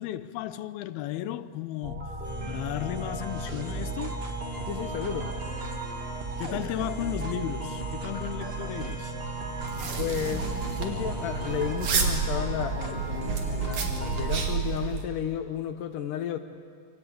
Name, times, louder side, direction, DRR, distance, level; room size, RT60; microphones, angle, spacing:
voice 1, 0.0-2.1 2.5-4.2 6.4-9.1, left 13 dB, 90° left, 2.7 m, -34 dB
sound 1, 1.8-14.5, right 3 dB, 25° right, 1.3 m, -36 dB
sound 2, 2.2-11.7, equal, 45° right, 6.5 m, -41 dB
voice 2, 4.7-5.3 10.0-16.4, left 9 dB, 70° left, 2.4 m, -33 dB
sound 3, 9.6-15.0, right 5 dB, 60° right, 3.7 m, -30 dB
27.5 x 24.0 x 8.6 m
omnidirectional pair, 4.2 m